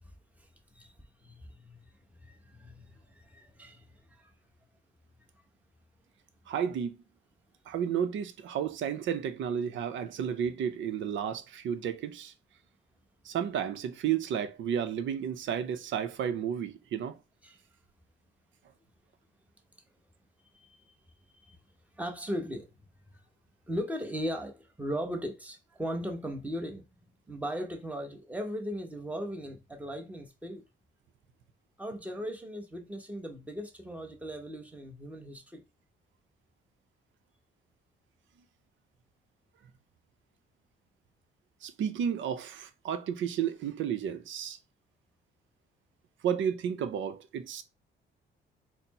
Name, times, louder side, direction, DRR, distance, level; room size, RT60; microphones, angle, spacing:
voice 1, 1.2-1.9 2.2-4.3 17.4-17.6 20.5-20.9 21.5-21.6 21.9-22.9 23.1-23.2 23.7-26.8 27.3-30.6 31.8-35.6, equal, 5° right, 1.0 m, -38 dB
voice 2, 6.5-7.0 7.7-12.3 13.3-17.1 41.6-44.6 46.2-47.6, right 8 dB, 75° right, 0.6 m, -32 dB
4.3 x 2.0 x 4.1 m
cardioid pair, 90°, 20 cm